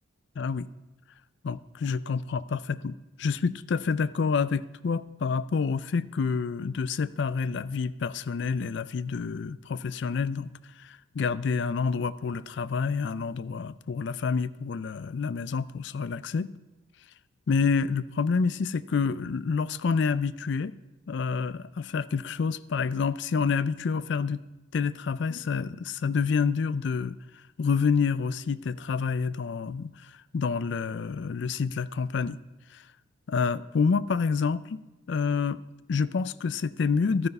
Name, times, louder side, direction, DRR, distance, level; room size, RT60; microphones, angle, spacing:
voice 1, 0.4-0.7 1.4-10.5 10.8-16.5 17.5-20.7 21.1-24.4 24.7-27.2 27.6-29.9 30.3-32.4 32.7-32.8 33.3-34.8 35.1-35.6 35.9-37.3, left 5 dB, 60° left, 17 dB, 0.4 m, -28 dB
12.0 x 9.6 x 5.4 m, 1.0 s
head